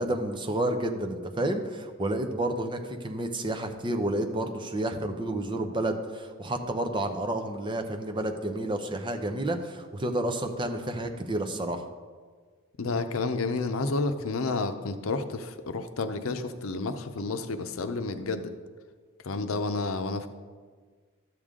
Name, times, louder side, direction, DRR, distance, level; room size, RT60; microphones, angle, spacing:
voice 1, 0.0-11.8, right 1 dB, 25° right, 5 dB, 0.7 m, -30 dB
voice 2, 12.8-18.5 19.2-20.3, left 3 dB, 80° left, 9 dB, 0.7 m, -30 dB
12.5 x 6.8 x 3.7 m, 1.6 s
head